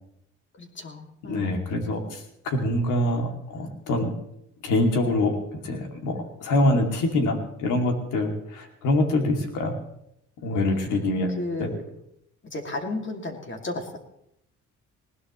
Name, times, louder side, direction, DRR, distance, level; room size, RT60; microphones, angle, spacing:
voice 1, 0.6-1.7 6.7-7.0 11.4-11.9 12.4-14.0, left 2 dB, 40° left, 3 dB, 2.6 m, -34 dB
voice 2, 1.3-4.1 4.6-9.8 10.4-11.3 11.6-11.7, left 1 dB, 90° left, 3 dB, 2.7 m, -25 dB
20.0 x 17.0 x 3.2 m, 0.78 s
cardioid pair, 90°, 30 cm